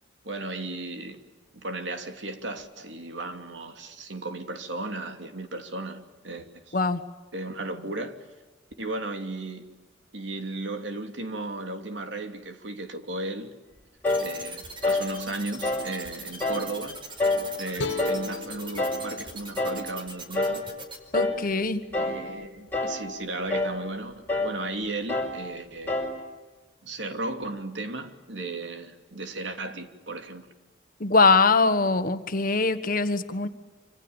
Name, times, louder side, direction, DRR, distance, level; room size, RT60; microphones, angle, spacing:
voice 1, 0.2-1.2 1.5-6.8 7.3-8.2 8.8-9.7 10.1-13.5 14.2-17.0 17.6-20.7 21.9-26.1 26.8-30.5, right 2 dB, 90° right, 2.9 m, -35 dB
sound 1, 14.0-14.3 14.8-15.1 15.6-15.9 16.4-16.7 17.2-17.5 18.0-18.3 18.8-19.1 19.6-19.9 20.3-20.7 21.1-21.4 21.9-22.3 22.7-23.1 23.5-23.8 24.3-24.6 25.1-25.4 25.9-26.2, left 2 dB, 10° left, 5.2 m, -27 dB
sound 2, 14.0-21.0, right 2 dB, 30° right, 4.8 m, -40 dB
sound 3, 17.8-21.0, left 3 dB, 75° left, 2.0 m, -37 dB
voice 2, 21.1-21.8 31.0-33.5, left 3 dB, 50° left, 1.5 m, -22 dB
27.0 x 26.5 x 7.2 m
head